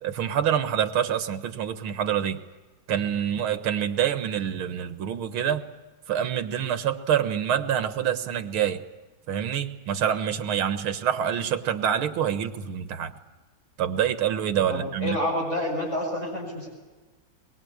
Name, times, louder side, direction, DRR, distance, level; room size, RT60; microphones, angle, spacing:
voice 1, 0.0-2.4 2.9-5.6 6.1-8.8 9.3-13.1 13.8-15.2, right 9 dB, 80° right, 9 dB, 2.1 m, -26 dB
voice 2, 14.7-16.7, left 1 dB, 35° left, -3 dB, 7.4 m, -28 dB
23.5 x 22.0 x 8.6 m, 1.3 s
omnidirectional pair, 2.3 m